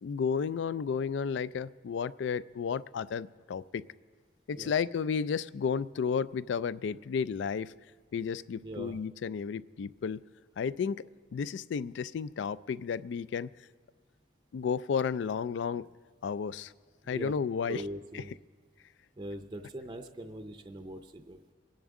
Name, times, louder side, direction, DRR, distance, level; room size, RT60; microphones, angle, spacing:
voice 1, 0.0-3.8 4.5-7.7 8.1-10.2 10.6-13.5 14.5-15.9 16.2-16.7 17.1-17.8 18.1-18.2, left 6 dB, 65° left, 18 dB, 0.3 m, -32 dB
voice 2, 8.6-9.0 17.0-17.4 17.7-18.3 19.2-21.5, right 1 dB, 25° right, 6 dB, 0.5 m, -41 dB
24.5 x 10.5 x 3.7 m, 1.5 s
head